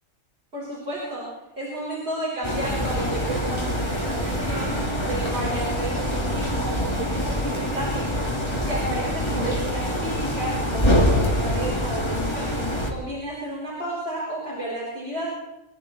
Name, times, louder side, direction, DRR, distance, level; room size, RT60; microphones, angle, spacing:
voice 1, 0.5-1.3 1.6-8.1 8.6-12.6 12.9-15.3, right 1 dB, 50° right, -7 dB, 5.4 m, -32 dB
sound 1, 2.4-12.9, equal, 20° left, 2.6 m, -25 dB
25.5 x 12.0 x 4.4 m, 0.96 s
omnidirectional pair, 1.4 m